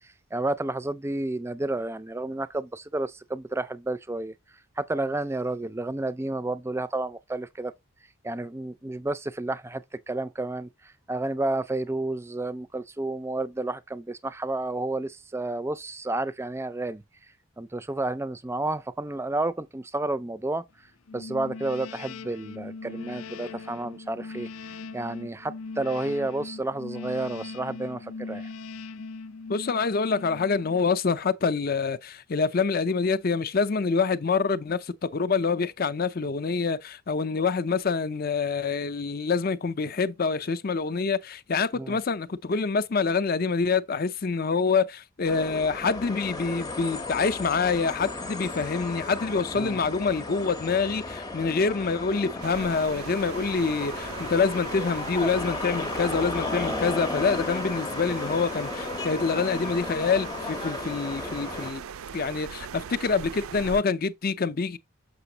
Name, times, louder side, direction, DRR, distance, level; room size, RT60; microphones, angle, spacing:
voice 1, 0.0-4.3 4.8-7.7 8.2-17.0 17.6-20.6 21.1-28.5 41.7-42.0 49.5-49.8, right 2 dB, 10° right, 0.4 m, -31 dB
sound 1, 21.1-31.0, left 4 dB, 85° left, 0.6 m, -40 dB
voice 2, 29.5-61.8 62.1-64.8, left 4 dB, 45° left, 0.5 m, -26 dB
sound 2, 45.2-61.7, left 3 dB, 20° left, 0.8 m, -34 dB
sound 3, 52.4-63.8, right 7 dB, 85° right, 0.4 m, -40 dB
6.8 x 5.9 x 2.8 m
head